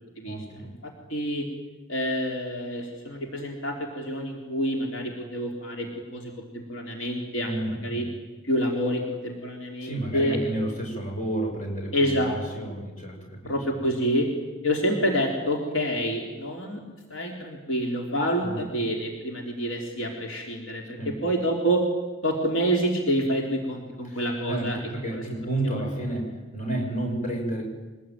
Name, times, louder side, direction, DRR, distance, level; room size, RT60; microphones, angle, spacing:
voice 1, 0.2-0.7 7.4-8.1 9.8-13.7 18.4-18.6 21.0-21.2 24.0-27.6, right 1 dB, 40° left, 1 dB, 6.7 m, -31 dB
voice 2, 1.1-1.5 1.9-5.9 6.1-8.0 8.4-10.4 11.9-12.4 13.5-14.3 14.6-16.8 17.1-21.8 22.2-24.8 25.1-25.2, equal, 75° left, 1 dB, 3.7 m, -27 dB
25.0 x 20.0 x 9.4 m, 1.2 s
head